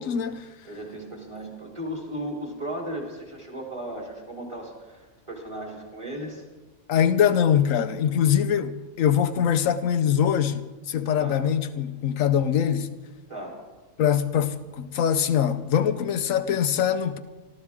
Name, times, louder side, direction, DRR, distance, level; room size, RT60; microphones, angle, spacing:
voice 1, 0.0-0.5 6.9-12.9 14.0-17.2, left 9 dB, 90° left, 1.1 m, -23 dB
voice 2, 0.6-5.0 5.3-6.4 11.1-11.4 13.3-13.6, right 1 dB, 20° right, 3.6 m, -35 dB
26.0 x 13.5 x 3.6 m
omnidirectional pair, 1.3 m